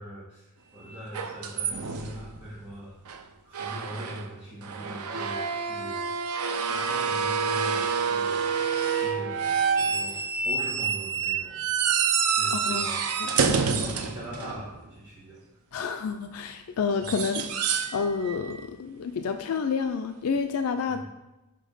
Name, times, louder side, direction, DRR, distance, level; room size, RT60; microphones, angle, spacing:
voice 1, 0.0-3.0 3.4-6.1 6.7-8.6 8.9-10.2 10.4-11.6 12.4-13.1 13.5-15.4 17.0-17.1 20.8-21.0, right 1 dB, 10° right, -9 dB, 1.7 m, -41 dB
sound 1, 1.1-2.4 3.1-3.2 3.5-4.3 4.6-14.9 16.9-18.0 18.3-18.6 20.4-20.5, right 6 dB, 85° right, 0.6 m, -28 dB
voice 2, 12.5-12.9 13.2-13.6 15.7-17.5 17.9-21.0, left 5 dB, 80° left, 7 dB, 0.4 m, -29 dB
5.6 x 5.2 x 5.4 m, 0.99 s
head